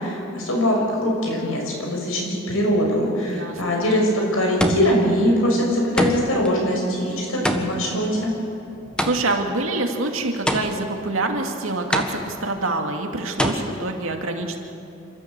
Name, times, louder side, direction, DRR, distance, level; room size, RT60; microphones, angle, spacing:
voice 1, 0.0-8.3, equal, 85° left, 0 dB, 6.0 m, -22 dB
voice 2, 3.2-3.8 9.0-14.6, right 2 dB, 75° right, 3 dB, 2.3 m, -26 dB
sound 1, 3.6-4.0 4.6-5.1 6.0-6.5 7.4-9.5 10.5-11.0 11.9-12.5 13.4-13.5, equal, 5° left, 1.4 m, -25 dB
27.5 x 13.5 x 8.2 m, 2.7 s
head